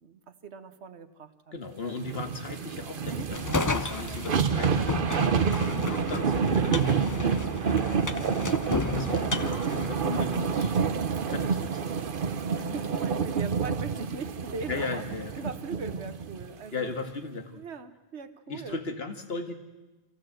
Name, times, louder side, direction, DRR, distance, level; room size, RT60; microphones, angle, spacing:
voice 1, 0.0-1.5 1.8-1.9 3.1-3.3 4.0-4.2 12.5-15.0 15.4-16.9 17.6-18.8, right 4 dB, 80° right, 10 dB, 1.4 m, -40 dB
voice 2, 1.5-8.6 9.0-10.8 11.2-12.1 12.7-12.9 14.7-15.5 16.7-17.6 18.5-19.5, left 3 dB, 65° left, 6 dB, 1.9 m, -37 dB
sound 1, 2.0-16.5 16.9-17.0, right 6 dB, 55° right, 1.0 m, -28 dB
sound 2, 3.3-10.5, left 3 dB, 25° left, 0.5 m, -33 dB
25.0 x 15.5 x 7.8 m, 1.1 s
omnidirectional pair, 1.1 m